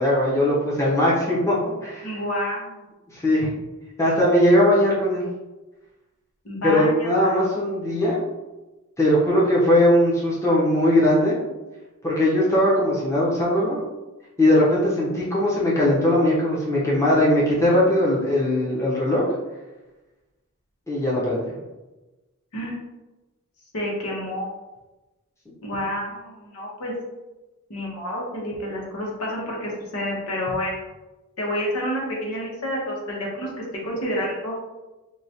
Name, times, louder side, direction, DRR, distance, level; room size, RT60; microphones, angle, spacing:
voice 1, 0.0-1.5 1.8-2.1 3.1-3.5 4.0-5.2 6.6-8.3 9.0-11.4 12.0-13.8 14.4-19.3 20.9-21.6, left 1 dB, 15° left, -6 dB, 0.7 m, -20 dB
voice 2, 2.0-2.8 6.4-7.4 22.5-22.8 23.7-24.5 25.6-26.9 27.7-30.8 31.4-34.5, equal, 85° left, -3 dB, 1.1 m, -29 dB
4.7 x 2.3 x 2.8 m, 1.1 s
head